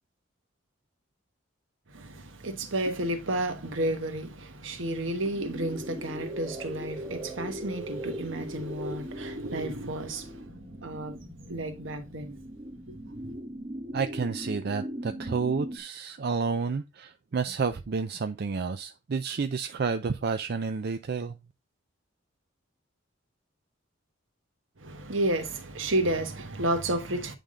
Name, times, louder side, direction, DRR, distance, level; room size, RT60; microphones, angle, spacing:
voice 1, 1.9-10.5 10.8-12.4 12.9-13.4 24.8-27.3, right 1 dB, 80° right, 1.2 m, -32 dB
sound 1, 5.3-15.8, equal, 25° right, 1.3 m, -39 dB
voice 2, 13.9-21.4, right 5 dB, 55° right, 0.4 m, -30 dB
9.1 x 3.6 x 3.7 m
head